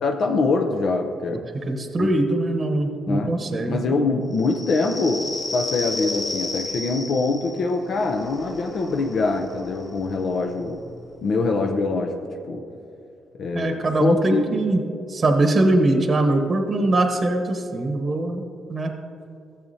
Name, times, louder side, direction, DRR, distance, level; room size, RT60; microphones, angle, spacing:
voice 1, 0.0-1.5 2.0-2.1 3.1-10.8 11.2-12.1 12.5-12.7 13.4-14.4, left 3 dB, 60° left, 3 dB, 0.6 m, -24 dB
voice 2, 1.7-3.8 13.5-14.8 15.1-18.4 18.7-18.9, right 2 dB, 35° right, 5 dB, 0.9 m, -22 dB
sound 1, 4.3-11.6, left 2 dB, 20° left, 0.8 m, -34 dB
14.0 x 7.2 x 2.8 m, 2.6 s
cardioid pair, 90°, 0 cm